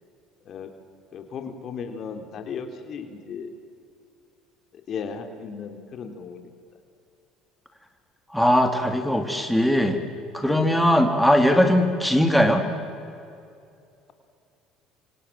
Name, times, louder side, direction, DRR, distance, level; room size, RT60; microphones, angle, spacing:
voice 1, 1.1-3.5 4.9-6.4 10.4-10.8, left 6 dB, 50° left, 6 dB, 3.5 m, -35 dB
voice 2, 8.3-10.0 10.3-12.6, equal, ahead, 5 dB, 3.0 m, -20 dB
28.0 x 25.5 x 7.6 m, 2.5 s
hypercardioid pair, 75°, 0 cm